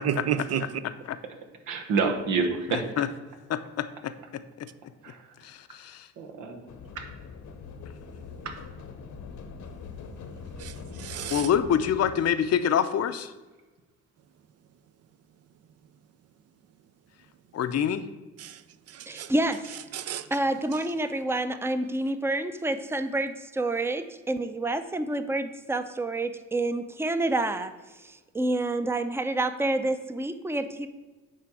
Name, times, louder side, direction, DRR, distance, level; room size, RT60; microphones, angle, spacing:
voice 1, 0.0-0.6 10.6-11.5 18.4-18.6 18.9-19.3 19.9-20.3, right 9 dB, 55° right, 14 dB, 0.5 m, -31 dB
voice 2, 1.7-2.9 5.0-5.3 6.2-6.6 6.9-7.0 8.4-8.5, right 4 dB, 90° right, 5 dB, 1.1 m, -28 dB
voice 3, 3.5-4.1 5.8-6.0 11.3-13.3 17.5-18.0, left 9 dB, 55° left, 12 dB, 0.6 m, -25 dB
sound 1, 6.7-12.2, left 5 dB, 75° left, 1.0 m, -42 dB
voice 4, 19.1-19.8 20.3-27.7 28.0-30.9, right 2 dB, 10° right, 10 dB, 0.5 m, -28 dB
9.3 x 3.4 x 6.1 m, 1.2 s
cardioid pair, 90°, 30 cm